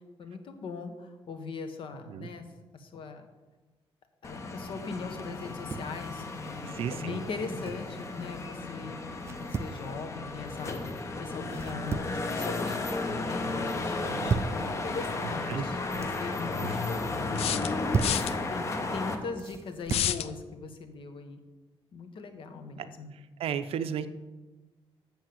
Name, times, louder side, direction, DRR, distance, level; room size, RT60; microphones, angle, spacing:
voice 1, 0.2-2.4 2.7-3.3 4.2-9.1 9.4-10.7 11.2-12.8 13.2-17.0 17.4-17.9 18.2-21.4 21.9-23.1, left 4 dB, 60° left, 7 dB, 1.2 m, -40 dB
sound 1, 4.2-19.1, left 3 dB, 30° left, 0.9 m, -34 dB
sound 2, 5.4-6.0 7.3-7.9 9.2-9.8 11.5-12.2 12.6-13.1 13.9-14.6 15.7-16.2 17.5-18.3 19.4-20.1, right 5 dB, 25° right, 0.3 m, -34 dB
voice 2, 6.6-7.2 11.4-11.6 14.1-14.4 15.5-15.7 16.6-16.8 22.8-22.9 23.4-24.1, right 8 dB, 70° right, 11 dB, 0.6 m, -34 dB
sound 3, 17.4-18.3 19.9-20.3, left 11 dB, 85° left, 0.5 m, -29 dB
7.4 x 7.1 x 7.6 m, 1.2 s
wide cardioid pair, 180°, 10 cm